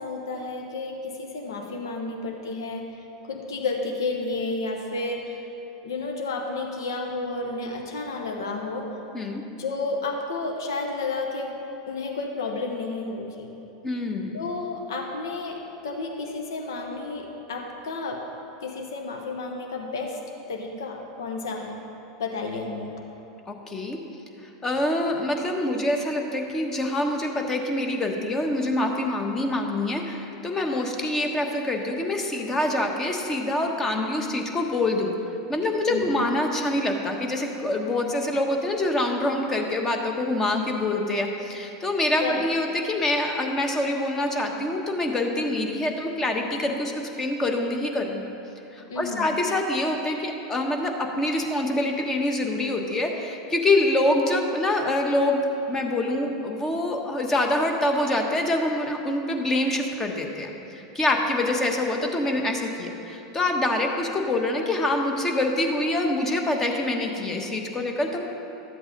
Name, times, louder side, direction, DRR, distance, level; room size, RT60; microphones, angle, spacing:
voice 1, 0.0-2.8 3.2-5.4 5.8-8.9 9.6-11.6 11.9-13.5 14.3-18.2 18.6-20.2 20.5-21.8 22.2-22.9 35.9-36.1 42.2-42.5 48.9-49.3, left 3 dB, 75° left, 2 dB, 1.0 m, -31 dB
voice 2, 13.8-14.4 23.5-24.0 24.6-35.1 35.5-46.9 47.2-48.3 48.7-55.4 55.7-68.2, left 1 dB, 20° left, 3 dB, 1.2 m, -25 dB
12.5 x 7.8 x 3.9 m, 2.9 s
hypercardioid pair, 90°, 2 cm